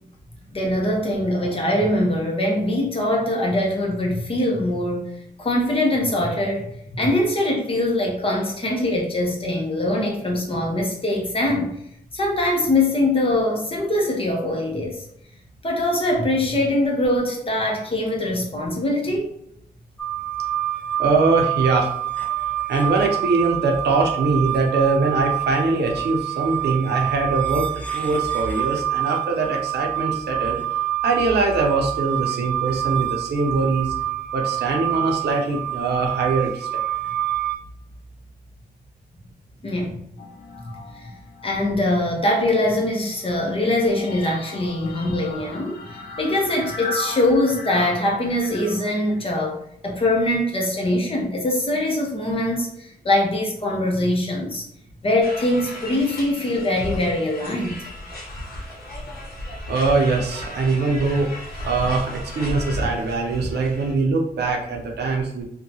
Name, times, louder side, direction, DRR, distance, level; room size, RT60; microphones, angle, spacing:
voice 1, 0.5-5.1 5.4-11.8 12.1-15.0 15.6-19.3 39.6-40.0 41.0-41.1 41.4-54.6 55.0-57.8, left 1 dB, 35° left, -1 dB, 0.7 m, -22 dB
sound 1, 20.0-37.6, right 13 dB, 5° left, 0.3 m, -27 dB
voice 2, 21.0-21.9 22.7-30.6 31.0-34.0 34.3-36.8 59.7-61.3 61.6-65.4, right 3 dB, 85° right, 1 dB, 0.6 m, -22 dB
sound 2, 40.2-41.9 42.2-49.2, left 2 dB, 80° left, 0.5 m, -37 dB
sound 3, 55.2-63.9, left 1 dB, 60° left, 0.8 m, -34 dB
2.7 x 2.2 x 2.7 m, 0.73 s
wide cardioid pair, 125°, 17 cm